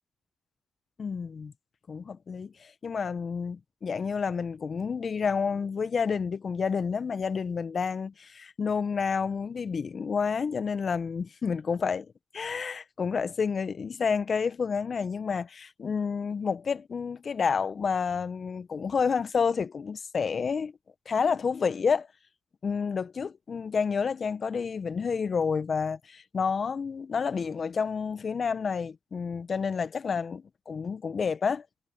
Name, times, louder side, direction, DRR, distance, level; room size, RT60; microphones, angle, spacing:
voice 1, 1.0-1.5 1.9-12.0 12.3-20.7 21.0-22.1 22.6-30.4 30.7-31.6, left 5 dB, 50° left, 1.4 m, -29 dB
hypercardioid pair, 45°, 0 cm